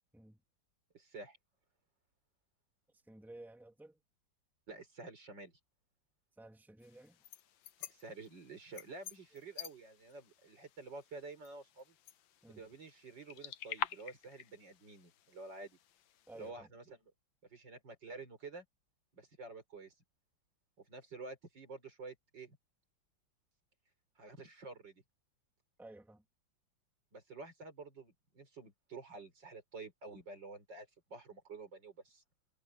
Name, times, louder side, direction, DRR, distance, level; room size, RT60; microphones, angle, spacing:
voice 1, 0.9-1.4 4.7-5.5 7.9-12.0 12.6-15.8 16.4-17.1 17.5-18.7 19.1-19.9 20.8-22.6 24.2-25.0 27.1-32.2, right 3 dB, 70° right, 5.2 m, -50 dB
voice 2, 3.1-4.0 6.4-7.2 12.4-12.6 16.3-16.7 25.8-26.2, right 1 dB, ahead, 2.5 m, -54 dB
sound 1, 6.8-16.5, left 11 dB, 85° left, 1.7 m, -48 dB
omnidirectional pair, 2.1 m